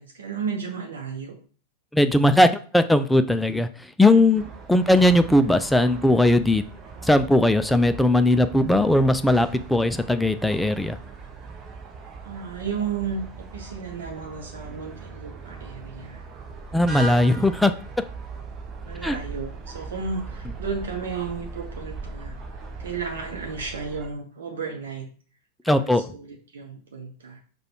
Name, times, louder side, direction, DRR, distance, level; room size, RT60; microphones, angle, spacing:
voice 1, 0.0-1.4 4.1-4.2 12.2-16.2 18.9-22.4 22.8-25.1 25.7-27.4, right 5 dB, 65° right, 1 dB, 0.7 m, -33 dB
voice 2, 1.9-6.6 7.0-11.0 16.7-17.7 19.0-19.2 25.7-26.1, left 1 dB, 5° left, 10 dB, 0.3 m, -19 dB
sound 1, 4.4-24.1, right 3 dB, 25° right, 0.7 m, -39 dB
4.8 x 2.3 x 4.4 m, 0.41 s
figure-of-eight pair, 90°, 0 cm